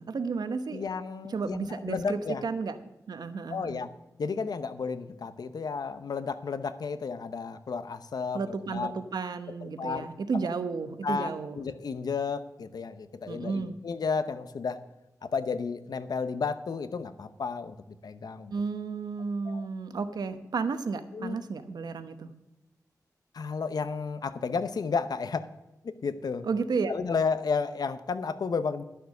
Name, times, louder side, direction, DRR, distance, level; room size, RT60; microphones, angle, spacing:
voice 1, 0.0-0.8 1.3-3.8 8.3-11.6 13.3-13.8 18.5-22.3 26.4-26.9, right 4 dB, 90° right, 10 dB, 0.9 m, -32 dB
voice 2, 0.7-2.4 3.5-3.9 4.2-8.9 9.6-10.1 10.3-10.4 11.0-14.8 15.2-17.8 18.0-18.5 19.5-19.7 21.1-21.4 23.3-25.5 25.8-26.5 26.9-28.8, left 5 dB, 80° left, 12 dB, 0.7 m, -32 dB
12.0 x 6.7 x 6.6 m, 0.98 s
wide cardioid pair, 90°, 7 cm